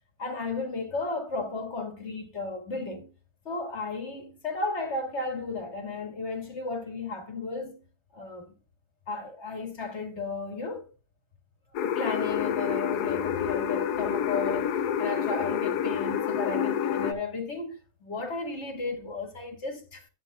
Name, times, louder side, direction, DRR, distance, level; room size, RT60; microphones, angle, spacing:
voice 1, 0.2-3.1 3.5-7.8 8.1-8.5 9.1-10.9 11.8-20.1, left 3 dB, 45° left, 2.1 m, -34 dB
sound 1, 11.7-17.1, left 8 dB, 80° left, 1.4 m, -28 dB
11.5 x 9.2 x 2.3 m
omnidirectional pair, 1.7 m